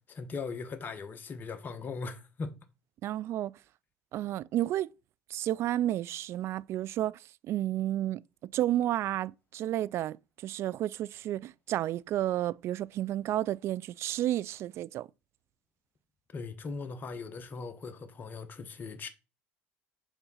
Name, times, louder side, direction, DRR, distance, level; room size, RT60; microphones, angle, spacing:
voice 1, 0.1-2.5 16.3-19.1, left 4 dB, 35° left, 1.1 m, -39 dB
voice 2, 3.0-3.5 4.1-4.9 5.3-7.2 7.5-10.2 10.4-15.1, right 13 dB, 55° right, 0.3 m, -31 dB
6.9 x 3.6 x 5.6 m
supercardioid pair, 85°, 5 cm